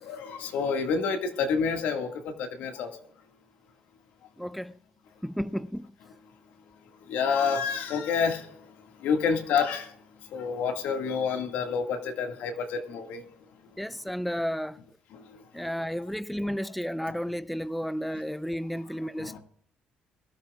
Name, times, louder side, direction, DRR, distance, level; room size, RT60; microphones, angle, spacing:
voice 1, 0.0-2.9 7.1-8.5 9.0-9.9 10.3-13.2 15.1-15.2 17.1-17.2 19.2-19.4, left 6 dB, 80° left, 1.9 m, -28 dB
voice 2, 4.4-4.7 5.2-5.9 13.8-14.8 15.5-19.4, equal, ahead, 0.5 m, -32 dB
22.5 x 12.5 x 2.4 m
cardioid pair, 80°, 3 cm